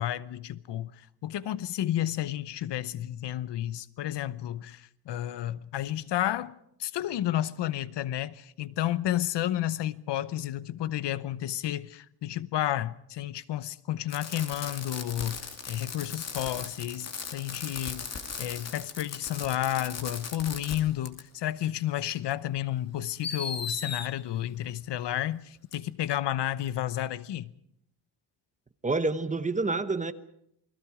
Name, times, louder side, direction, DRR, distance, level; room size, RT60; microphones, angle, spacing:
voice 1, 0.0-15.4 15.7-18.1 18.4-27.5, left 12 dB, 80° left, 1.0 m, -31 dB
Fireworks, 14.1-20.8 21.1-21.2 22.3-22.4 23.2-24.1 25.7-25.8, left 5 dB, 40° left, 2.6 m, -38 dB
voice 2, 28.8-30.1, right 3 dB, 20° right, 0.9 m, -28 dB
28.5 x 21.5 x 4.9 m
wide cardioid pair, 175°, 41 cm